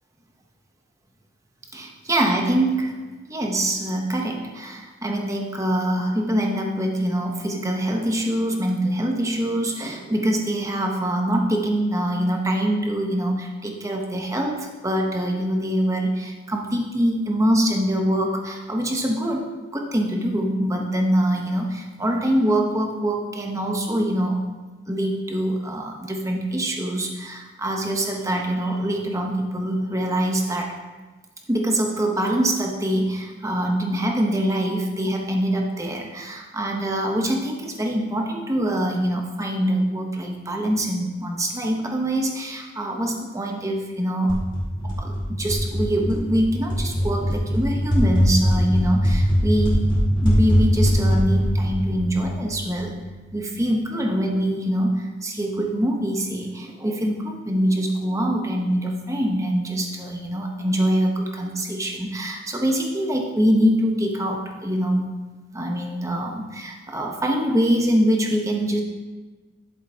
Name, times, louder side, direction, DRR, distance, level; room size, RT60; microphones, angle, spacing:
voice 1, 1.7-3.0 3.3-24.4 24.9-30.8 31.5-44.4 44.8-49.8 50.1-53.0 53.3-65.1 65.5-68.8, right 1 dB, 15° right, 1 dB, 0.9 m, -24 dB
sound 1, 44.3-52.9, equal, 25° left, 2.4 m, -22 dB
11.5 x 7.3 x 2.8 m, 1.3 s
head